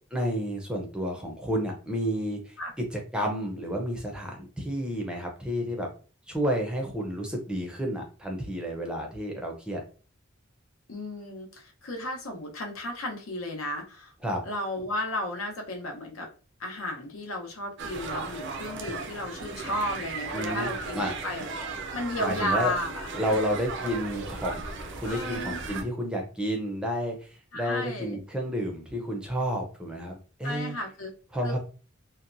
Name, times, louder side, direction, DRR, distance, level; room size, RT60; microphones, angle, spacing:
voice 1, 0.1-5.9 6.3-9.8 14.2-14.4 20.3-21.1 22.2-22.7 23.1-24.6 24.9-30.8 31.3-31.6, equal, 5° right, 0 dB, 0.5 m, -31 dB
voice 2, 10.9-14.1 14.4-16.3 16.6-23.0 25.0-25.6 27.5-28.2 30.4-31.1 31.4-31.5, left 1 dB, 85° left, 1 dB, 0.8 m, -34 dB
sound 1, 17.8-25.8, right 4 dB, 60° right, 0.4 m, -36 dB
2.7 x 2.1 x 2.5 m, 0.38 s
head